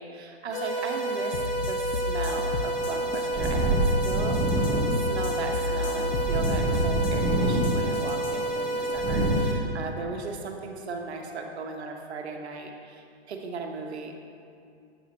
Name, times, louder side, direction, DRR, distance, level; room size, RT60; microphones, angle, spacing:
voice 1, 0.0-14.2, right 4 dB, 75° right, 3 dB, 0.8 m, -37 dB
sound 1, 0.5-9.5, right 1 dB, 30° left, 0.9 m, -30 dB
sound 2, 1.3-8.4, left 4 dB, 90° left, 0.6 m, -34 dB
sound 3, 2.5-9.4, right 1 dB, 20° right, 0.8 m, -27 dB
7.0 x 4.9 x 2.9 m, 2.5 s
hypercardioid pair, 140°, 33 cm